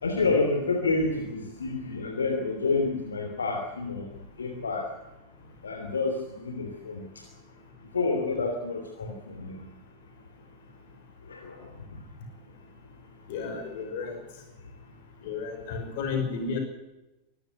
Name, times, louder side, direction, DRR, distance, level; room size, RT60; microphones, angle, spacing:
voice 1, 0.0-4.1 4.4-4.9 5.6-7.2 7.9-9.7 11.3-11.7, left 3 dB, 70° left, 4 dB, 3.0 m, -29 dB
voice 2, 13.3-14.2 15.2-16.6, left 5 dB, 50° left, 5 dB, 5.9 m, -32 dB
24.5 x 14.5 x 8.1 m, 0.98 s
figure-of-eight pair, 90°, 0 cm